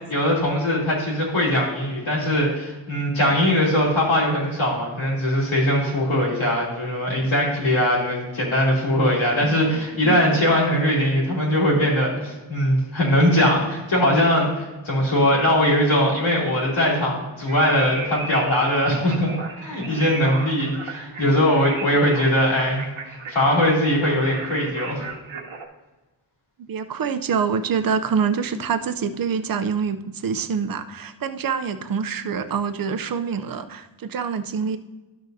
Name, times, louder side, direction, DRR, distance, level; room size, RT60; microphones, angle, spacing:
voice 1, 0.1-19.3 19.6-22.8 23.1-25.1, equal, 80° left, -5 dB, 2.9 m, -21 dB
voice 2, 9.9-10.3 26.7-34.8, right 6 dB, 50° right, 11 dB, 0.6 m, -26 dB
sound 1, 17.5-25.7, right 4 dB, 80° right, 1.1 m, -36 dB
12.0 x 6.4 x 2.7 m, 1.2 s
wide cardioid pair, 115°, 47 cm